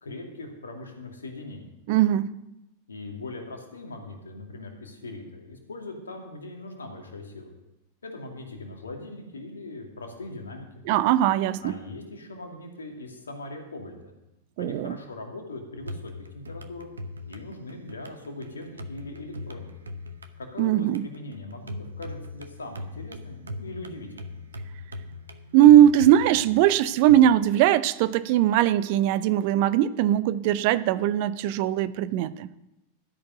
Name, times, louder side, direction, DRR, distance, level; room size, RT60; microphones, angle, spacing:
voice 1, 0.0-1.7 2.9-7.5 8.0-10.7 11.6-14.1 14.6-16.9 17.3-19.7 20.4-24.3, left 2 dB, 70° left, 2.5 m, -40 dB
voice 2, 1.9-2.4 10.9-11.7 14.6-14.9 20.6-21.1 25.5-32.5, right 12 dB, 45° right, 0.5 m, -20 dB
sound 1, 15.8-27.3, left 2 dB, 75° right, 0.8 m, -41 dB
13.0 x 5.3 x 9.0 m
figure-of-eight pair, 90°, 0 cm